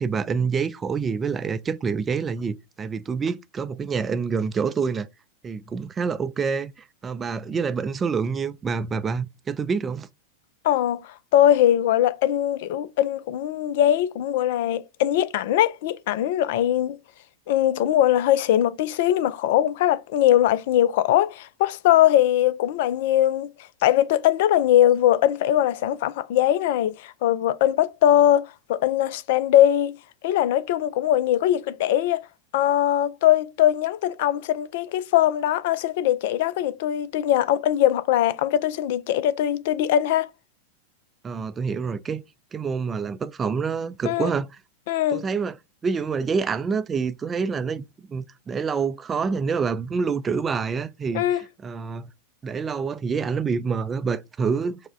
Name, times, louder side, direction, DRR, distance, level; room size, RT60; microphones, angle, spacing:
voice 1, 0.0-5.1 5.4-10.1 41.2-42.2 42.5-44.5 45.1-45.6 45.8-52.1 52.4-54.8, right 5 dB, 20° right, 0.4 m, -27 dB
voice 2, 10.6-17.0 17.5-23.5 23.8-30.0 30.2-32.2 32.5-40.3 44.0-44.3 44.9-45.2 51.1-51.4, left 12 dB, 50° left, 0.4 m, -21 dB
4.7 x 2.1 x 3.7 m
figure-of-eight pair, 90°, 0 cm